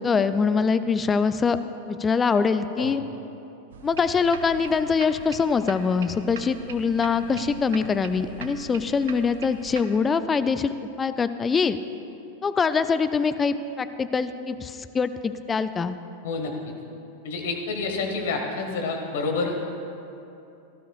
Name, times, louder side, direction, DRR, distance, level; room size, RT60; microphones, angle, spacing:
voice 1, 0.0-1.6 1.9-3.0 3.8-10.7 11.0-11.8 12.4-15.9, left 5 dB, 20° left, 12 dB, 0.4 m, -23 dB
sound 1, 3.7-9.8, right 5 dB, 60° right, 0.7 m, -42 dB
voice 2, 17.2-19.6, left 3 dB, 55° left, 3 dB, 1.7 m, -28 dB
18.0 x 13.0 x 2.4 m, 2.8 s
figure-of-eight pair, 90°, 0 cm